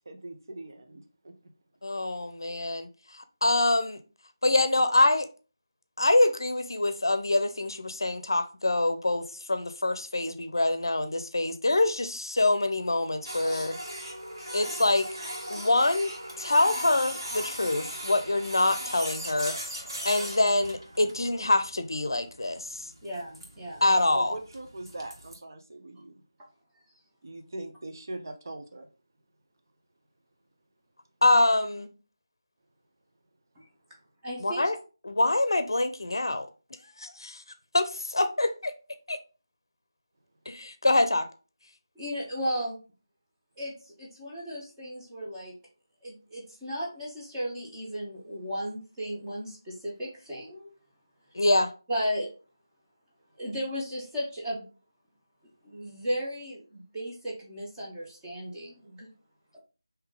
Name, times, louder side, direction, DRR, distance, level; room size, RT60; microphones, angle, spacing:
voice 1, 0.1-1.3 24.1-26.2 27.2-28.9, right 2 dB, 50° right, 0.7 m, -41 dB
voice 2, 1.8-2.9 3.4-4.0 4.4-5.3 6.0-9.2 9.5-13.7 14.5-15.0 15.5-16.1 16.4-19.5 20.0-22.8 23.8-24.3 31.2-31.9 34.4-34.8 35.0-36.5 37.0-37.4 37.7-38.7 39.1-39.2 40.5-41.3 51.3-51.7, left 2 dB, 70° left, 0.5 m, -25 dB
Printer, 13.2-25.3, equal, 75° right, 1.5 m, -39 dB
voice 3, 23.0-23.8 33.6-33.7 34.2-34.7 41.9-42.8 43.6-45.5 46.0-50.7 51.9-52.3 53.4-54.6 55.6-59.1, equal, 10° right, 0.9 m, -35 dB
3.7 x 2.8 x 3.6 m
figure-of-eight pair, 165°, 2 cm